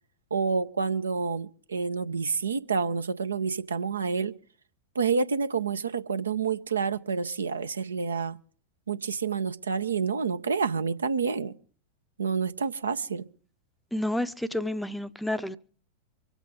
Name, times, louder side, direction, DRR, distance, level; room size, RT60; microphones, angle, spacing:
voice 1, 0.3-4.3 4.9-8.4 8.9-11.5 12.2-13.2, right 5 dB, 75° right, 0.6 m, -28 dB
voice 2, 13.9-15.6, left 1 dB, 5° left, 0.6 m, -30 dB
24.5 x 8.2 x 5.0 m
figure-of-eight pair, 90°, 0 cm